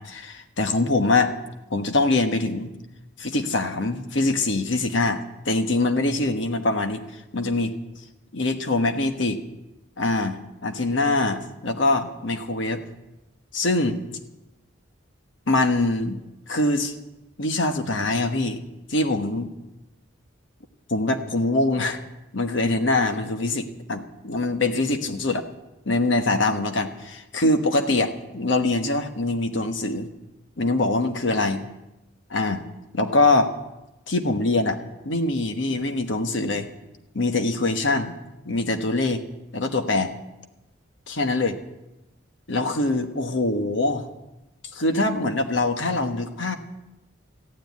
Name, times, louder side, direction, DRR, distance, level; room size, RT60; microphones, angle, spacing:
voice 1, 0.0-1.3 1.7-2.7 3.2-7.0 7.3-7.8 8.3-9.4 10.0-12.8 13.5-14.0 15.5-16.2 16.5-16.9 17.4-18.6 18.9-19.5 20.9-22.0 22.3-25.4 25.9-30.1 30.6-31.6 32.3-32.6 32.9-33.5 34.1-34.8 35.0-36.7 37.1-38.1 38.4-39.2 39.5-40.1 41.1-41.6 42.5-44.1 44.7-46.6, left 2 dB, 70° left, 6 dB, 1.2 m, -23 dB
14.5 x 9.7 x 9.3 m, 0.97 s
head